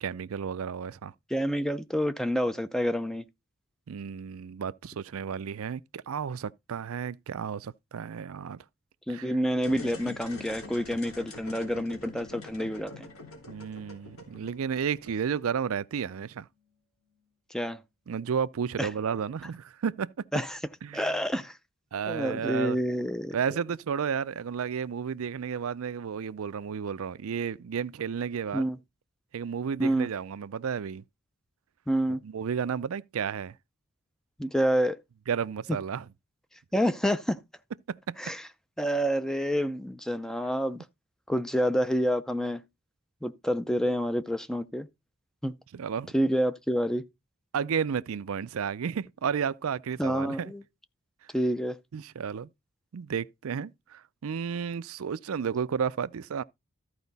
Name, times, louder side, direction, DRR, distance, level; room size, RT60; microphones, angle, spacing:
voice 1, 0.0-1.1 3.9-8.6 9.1-9.3 10.0-10.2 13.5-16.5 18.1-20.3 20.8-21.1 21.9-22.8 23.3-28.7 29.3-31.0 32.2-33.5 35.3-36.1 37.9-38.2 45.7-46.1 47.5-50.5 51.9-52.5 52.9-56.4, right 7 dB, 70° right, 0.4 m, -32 dB
voice 2, 1.3-3.2 9.1-13.1 17.5-17.8 18.8-18.9 20.3-20.6 20.9-21.6 22.1-23.3 28.5-28.8 29.8-30.1 31.9-32.2 34.4-35.0 36.7-37.4 38.2-38.5 38.8-40.8 41.3-42.6 43.2-44.9 45.4-45.5 46.1-47.0 50.0-50.6 51.3-51.8, equal, ahead, 0.5 m, -28 dB
sound 1, 9.5-15.4, left 2 dB, 75° left, 3.3 m, -45 dB
sound 2, 12.6-19.4 19.7-19.9 20.3-20.4, left 1 dB, 50° left, 7.7 m, -65 dB
14.0 x 4.8 x 4.0 m
head